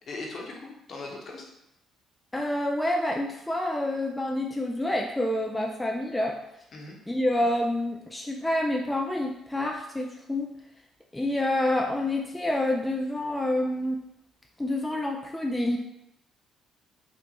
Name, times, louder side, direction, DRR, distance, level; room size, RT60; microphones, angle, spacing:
voice 1, 0.1-1.4 6.7-7.0, left 2 dB, 50° left, -1 dB, 0.8 m, -39 dB
voice 2, 2.3-6.4 7.1-10.5 11.1-14.0 14.6-15.8, left 1 dB, 10° left, 1 dB, 0.3 m, -28 dB
3.7 x 2.4 x 2.8 m, 0.83 s
cardioid pair, 80°, 0 cm